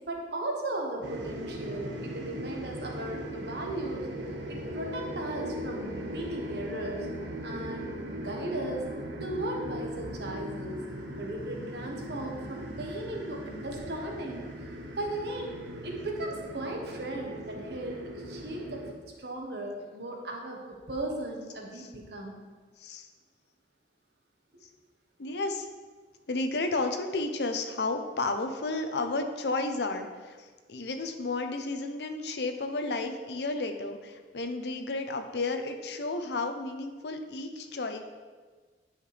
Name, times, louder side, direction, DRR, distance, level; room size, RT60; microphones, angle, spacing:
voice 1, 0.1-4.1 4.5-7.1 7.4-8.9 9.2-10.8 11.2-14.4 14.9-18.8 19.2-22.4, right 1 dB, 65° right, 1 dB, 1.2 m, -36 dB
sound 1, 1.0-18.9, equal, 90° right, 0.9 m, -39 dB
voice 2, 25.2-25.7 26.3-38.0, left 3 dB, 65° left, 6 dB, 0.7 m, -32 dB
9.8 x 5.7 x 3.3 m, 1.4 s
head